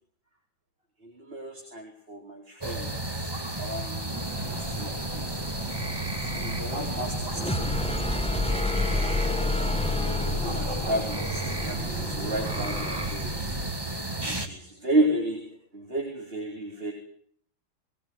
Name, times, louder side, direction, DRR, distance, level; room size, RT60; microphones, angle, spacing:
voice 1, 1.0-3.1 3.6-4.1 4.5-5.2 6.3-8.6 10.1-13.5 14.3-15.4 15.7-16.9, right 1 dB, 30° right, 1 dB, 4.8 m, -32 dB
sound 1, 2.6-14.5, right 1 dB, 15° right, 2.4 m, -32 dB
sound 2, 4.1-13.7, right 2 dB, 75° right, 3.8 m, -39 dB
sound 3, 7.4-13.2, left 2 dB, 5° left, 1.0 m, -30 dB
21.5 x 20.5 x 9.7 m, 0.63 s
omnidirectional pair, 1.9 m